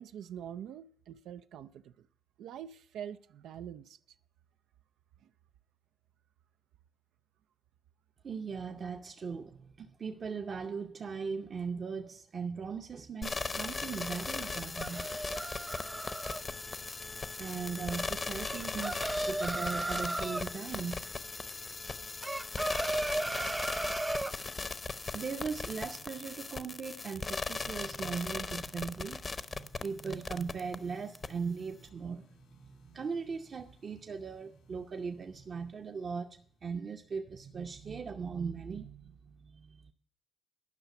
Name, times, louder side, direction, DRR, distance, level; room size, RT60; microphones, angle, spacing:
voice 1, 0.0-2.1 2.4-4.0 5.2-5.3, right 9 dB, 80° right, 0.4 m, -45 dB
voice 2, 8.2-15.1 17.4-21.1 23.4-23.5 25.1-29.2 29.6-39.9, right 5 dB, 45° right, 0.8 m, -39 dB
sound 1, 13.2-30.8 31.1-31.3, left 4 dB, 30° left, 0.8 m, -38 dB
sound 2, 14.4-16.4 18.4-20.5 22.2-24.4, right 1 dB, 15° right, 0.5 m, -35 dB
sound 3, 25.6-37.2, left 2 dB, 85° left, 2.6 m, -65 dB
10.5 x 5.8 x 7.8 m
cardioid pair, 90°, 0 cm